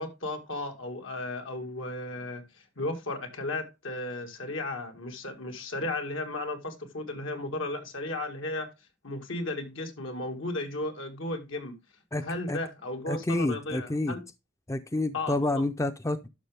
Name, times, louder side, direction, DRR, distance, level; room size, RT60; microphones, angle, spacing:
voice 1, 0.0-2.4 2.8-8.7 9.0-11.7 12.2-14.2 15.1-15.4, left 2 dB, 80° left, 1.8 m, -34 dB
voice 2, 12.1-12.6 13.1-14.2 14.7-16.3, left 2 dB, 15° left, 0.5 m, -29 dB
11.0 x 6.0 x 3.4 m
head